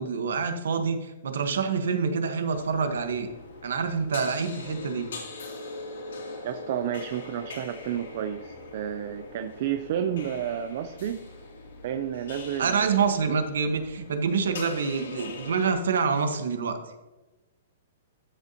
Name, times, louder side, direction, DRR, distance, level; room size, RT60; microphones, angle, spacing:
voice 1, 0.0-3.3 3.6-5.1 12.6-16.8, right 5 dB, 85° right, 7 dB, 1.2 m, -26 dB
sound 1, 2.5-15.7, left 3 dB, 80° left, 2.7 m, -42 dB
voice 2, 6.4-11.3 11.8-13.4, right 9 dB, 40° right, 9 dB, 0.4 m, -31 dB
12.5 x 6.9 x 2.9 m, 1.1 s
hypercardioid pair, 175°, 0 cm